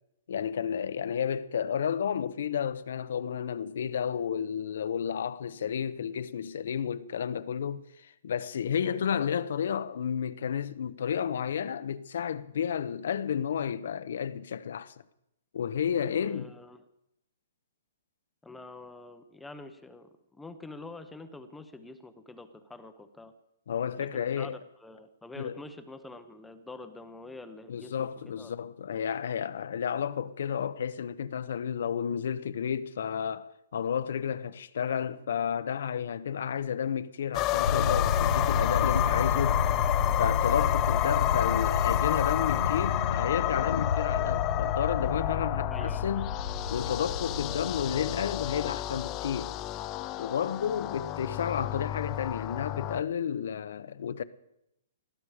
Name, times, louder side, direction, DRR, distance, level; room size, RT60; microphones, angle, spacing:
voice 1, 0.3-14.9 15.5-16.5 23.7-24.6 25.4-25.5 27.7-39.6 40.2-46.3 46.7-49.5 50.2-54.2, left 8 dB, 70° left, 0.9 m, -31 dB
voice 2, 16.0-16.8 18.4-23.3 24.0-28.1 28.4-28.5 45.7-46.2, left 2 dB, 5° left, 1.0 m, -46 dB
sound 1, 37.3-53.0, left 14 dB, 25° left, 0.6 m, -30 dB
sound 2, 37.6-48.3, left 5 dB, 85° left, 0.6 m, -31 dB
20.5 x 13.5 x 5.0 m
hypercardioid pair, 155°, 0 cm